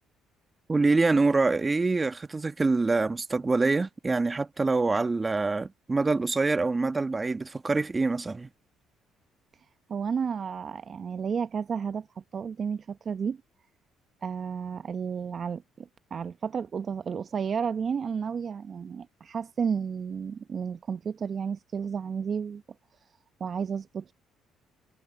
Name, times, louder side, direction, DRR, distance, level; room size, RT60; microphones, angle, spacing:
voice 1, 0.7-8.5, right 3 dB, 25° right, 1.5 m, -25 dB
voice 2, 9.9-13.4 14.2-22.6 23.4-24.1, right 6 dB, 50° right, 0.8 m, -32 dB
hypercardioid pair, 60°, 0 cm